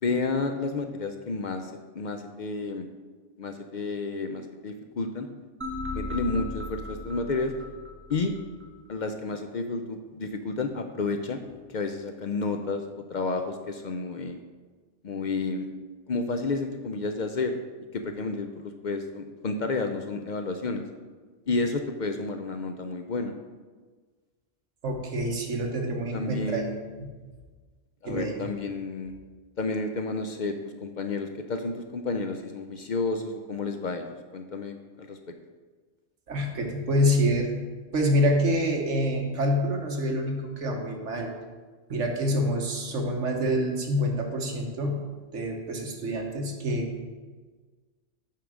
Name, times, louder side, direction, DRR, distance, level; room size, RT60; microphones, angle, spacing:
voice 1, 0.0-2.9 3.4-5.3 5.9-7.5 8.1-8.3 8.9-11.4 11.7-12.8 13.1-14.4 15.0-15.7 16.1-17.6 17.9-20.8 21.5-23.3 26.1-26.8 28.0-29.1 29.6-34.1 34.3-35.2, left 3 dB, 55° left, 6 dB, 0.5 m, -31 dB
sound 1, 5.6-8.7, left 2 dB, 10° right, 1.3 m, -36 dB
voice 2, 24.8-26.6 26.9-27.1 28.0-28.5 36.3-37.5 37.9-41.3 41.9-45.0 45.3-46.9, equal, 75° right, 1 dB, 1.5 m, -27 dB
8.5 x 3.7 x 6.2 m, 1.4 s
omnidirectional pair, 1.3 m